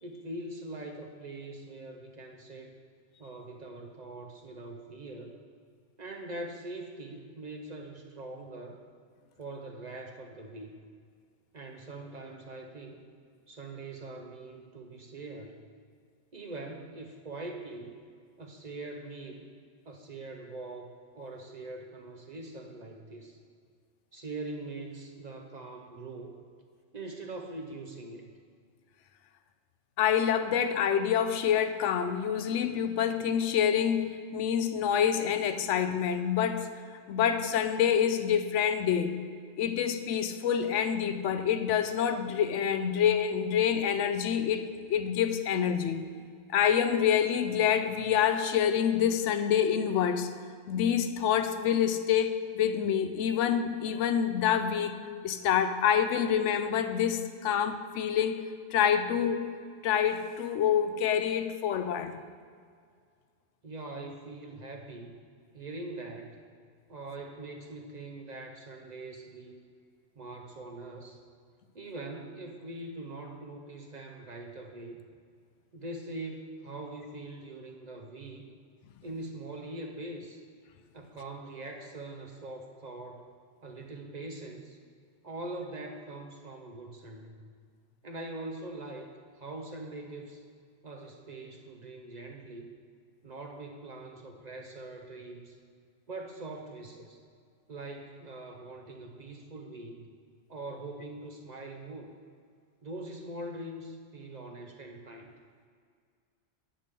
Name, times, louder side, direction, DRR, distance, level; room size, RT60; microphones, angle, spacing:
voice 1, 0.0-2.8 3.2-5.4 6.0-8.8 9.4-10.8 11.5-13.0 13.5-15.6 16.3-17.9 18.4-19.5 19.8-23.4 24.1-26.4 26.9-28.3 63.6-65.2 65.5-66.4 66.9-69.7 70.2-71.2 71.7-75.0 75.7-78.4 79.0-80.4 80.9-83.3 83.6-84.8 85.2-87.5 88.0-90.4 90.8-92.7 93.2-95.6 96.1-97.2 97.7-100.1 100.5-102.1 102.8-105.3, right 2 dB, 45° right, 3 dB, 0.6 m, -42 dB
voice 2, 30.0-36.7 37.1-39.2 39.6-46.0 46.5-50.3 50.7-54.9 55.2-58.4 58.7-59.5 59.8-62.2, left 8 dB, 85° left, 9 dB, 0.9 m, -27 dB
9.9 x 3.5 x 6.6 m, 2.1 s
omnidirectional pair, 1.2 m